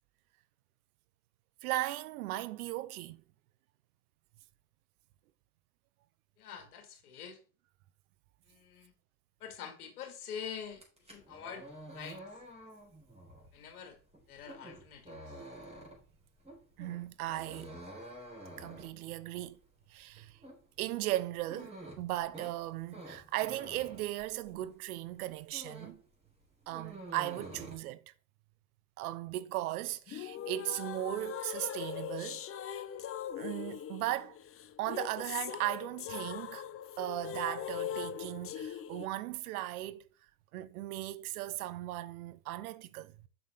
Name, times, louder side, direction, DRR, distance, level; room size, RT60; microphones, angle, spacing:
voice 1, 1.6-3.2 16.8-17.8 18.6-19.6 19.9-20.4 20.8-26.0 26.7-28.0 29.0-32.4 33.4-34.4 34.8-36.6 37.0-40.0 40.5-43.3, right 15 dB, 75° right, 0.8 m, -37 dB
voice 2, 6.4-7.4 8.5-8.9 9.4-12.2 13.5-14.0 14.3-15.4, left 7 dB, 85° left, 2.1 m, -46 dB
sound 1, 10.7-24.8 25.1-26.1 26.3-27.8, right 1 dB, 15° right, 4.0 m, -49 dB
sound 2, 30.1-39.1, left 10 dB, 30° left, 0.8 m, -41 dB
7.8 x 6.3 x 3.6 m
hypercardioid pair, 95°, 44 cm